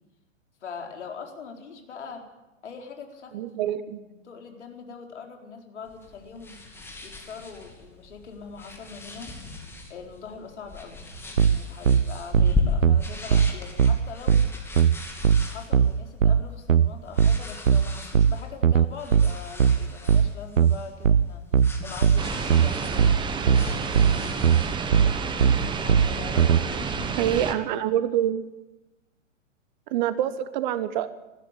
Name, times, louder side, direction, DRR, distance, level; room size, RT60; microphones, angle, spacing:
voice 1, 0.6-2.2 2.6-6.6 7.0-9.3 9.9-11.0 11.4-14.4 15.5-21.4 21.8-23.4 25.6-27.3, left 5 dB, 65° left, 2 dB, 4.4 m, -42 dB
voice 2, 3.3-4.0 27.2-28.4 29.9-31.1, right 11 dB, 35° right, 14 dB, 1.2 m, -26 dB
sound 1, 5.9-24.8, left 3 dB, 5° left, 2.9 m, -36 dB
sound 2, 11.4-26.6, right 7 dB, 80° right, 0.7 m, -20 dB
sound 3, 22.2-27.5, right 5 dB, 10° right, 1.4 m, -30 dB
20.5 x 15.0 x 8.6 m, 1.0 s
figure-of-eight pair, 115°, 38 cm